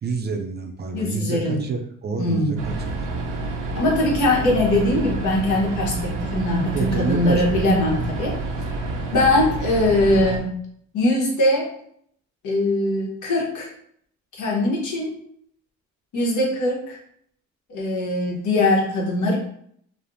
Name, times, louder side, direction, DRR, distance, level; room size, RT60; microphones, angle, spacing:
voice 1, 0.0-3.1 6.7-7.6 8.0-8.1, right 4 dB, 35° right, 3 dB, 0.4 m, -28 dB
voice 2, 0.9-1.6 2.2-2.6 3.7-8.4 9.1-10.5 10.9-11.7 12.4-13.7 14.3-15.1 16.1-17.0 17.7-19.4, left 1 dB, 75° left, -2 dB, 1.0 m, -21 dB
sound 1, 2.6-10.4, right 2 dB, 90° right, 0.5 m, -28 dB
3.2 x 2.0 x 2.6 m, 0.66 s
cardioid pair, 90°, 30 cm